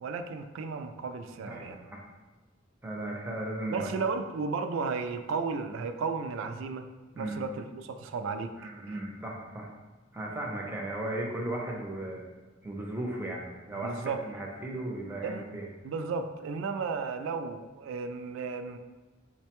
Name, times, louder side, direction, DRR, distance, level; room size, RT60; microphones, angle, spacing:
voice 1, 0.0-1.8 3.7-6.9 7.2-8.5 13.7-14.3 15.2-15.4 15.8-18.8, right 4 dB, 65° right, 8 dB, 0.3 m, -34 dB
voice 2, 1.4-2.0 2.8-4.1 7.1-7.4 8.6-9.7 10.1-12.2 12.6-15.7, right 1 dB, 10° right, -2 dB, 0.6 m, -36 dB
5.2 x 2.2 x 2.9 m, 1.2 s
head